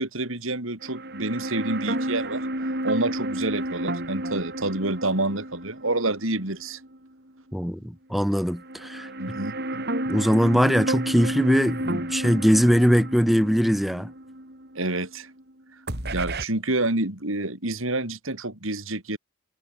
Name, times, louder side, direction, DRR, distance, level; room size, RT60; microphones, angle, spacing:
voice 1, 0.0-2.5 2.8-6.8 9.2-9.9 14.8-15.3 16.1-19.2, right 2 dB, 70° right, 3.9 m, -28 dB
sound 1, 0.8-7.1 7.4-7.5 8.5-15.5 15.9-16.4, right 1 dB, 50° right, 5.3 m, -31 dB
voice 2, 7.5-9.1 10.1-14.1, equal, ahead, 2.4 m, -21 dB
head